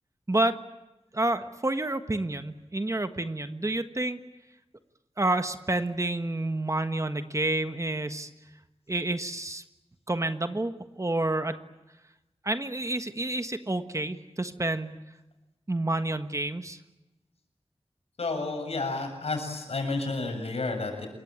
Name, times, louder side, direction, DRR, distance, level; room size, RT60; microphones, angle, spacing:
voice 1, 0.3-0.6 1.1-4.2 5.2-8.3 8.9-9.6 10.1-11.5 12.4-15.0 15.7-16.8, right 2 dB, 30° right, 9 dB, 1.5 m, -29 dB
voice 2, 18.2-21.1, left 3 dB, 85° left, 5 dB, 7.2 m, -31 dB
27.5 x 23.0 x 9.0 m, 1.0 s
wide cardioid pair, 80°, 10 cm